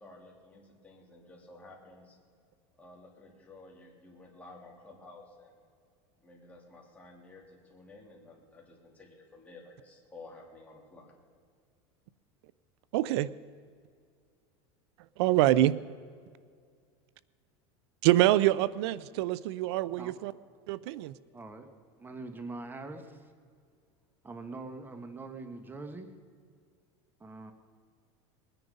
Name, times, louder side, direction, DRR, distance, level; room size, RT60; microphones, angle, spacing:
voice 1, 0.0-2.2 2.8-5.6 6.2-11.1, left 2 dB, 10° left, -2 dB, 3.3 m, -53 dB
voice 2, 12.9-13.3 15.2-15.7 18.0-20.3 20.7-21.1, right 15 dB, 75° right, 19 dB, 0.5 m, -25 dB
voice 3, 21.3-21.7 22.0-23.3 24.2-26.1 27.2-27.5, right 3 dB, 15° right, 7 dB, 1.3 m, -43 dB
21.0 x 9.9 x 5.3 m, 2.1 s
supercardioid pair, 135°, 14 cm